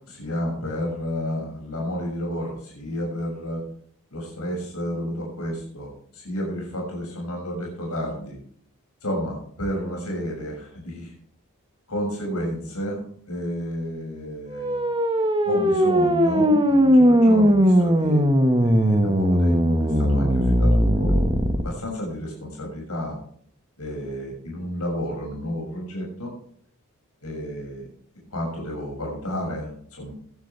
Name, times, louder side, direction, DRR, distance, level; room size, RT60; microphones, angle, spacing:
voice 1, 0.1-3.6 4.1-8.4 9.0-11.1 11.9-14.8 15.4-18.2 18.6-21.2 21.5-23.2 23.8-26.3 27.2-27.9 28.3-30.1, equal, 80° left, -2 dB, 6.8 m, -31 dB
sound 1, 14.5-21.6, equal, 20° right, 1.7 m, -19 dB
19.0 x 12.5 x 3.5 m, 0.62 s
head